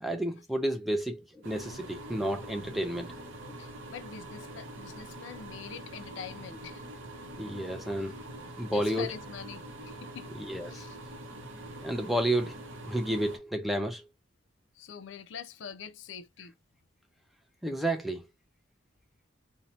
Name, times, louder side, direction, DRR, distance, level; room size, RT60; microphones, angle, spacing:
voice 1, 0.0-3.1 7.4-8.1 8.6-9.1 10.4-10.8 11.8-12.5 12.9-14.1 17.6-18.2, right 1 dB, ahead, 0.3 m, -31 dB
sound 1, 1.4-13.4, right 1 dB, 75° right, 0.7 m, -44 dB
voice 2, 3.6-6.8 8.7-10.3 10.7-11.0 14.8-16.5, left 7 dB, 65° left, 0.4 m, -44 dB
2.7 x 2.1 x 2.9 m
head